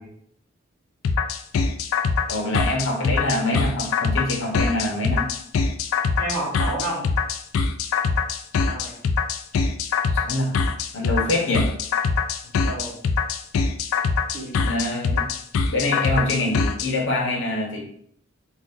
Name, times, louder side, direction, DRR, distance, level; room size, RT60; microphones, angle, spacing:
sound 1, 1.0-16.9, left 5 dB, 85° left, 0.3 m, -23 dB
voice 1, 2.3-5.3 10.1-10.6 10.9-11.7 14.6-15.3 15.7-17.9, left 1 dB, 65° left, -1 dB, 0.8 m, -25 dB
voice 2, 6.2-7.1 8.5-9.0 12.6-13.0 14.3-14.6, right 1 dB, 65° right, -10 dB, 1.1 m, -30 dB
2.6 x 2.5 x 3.6 m, 0.68 s
head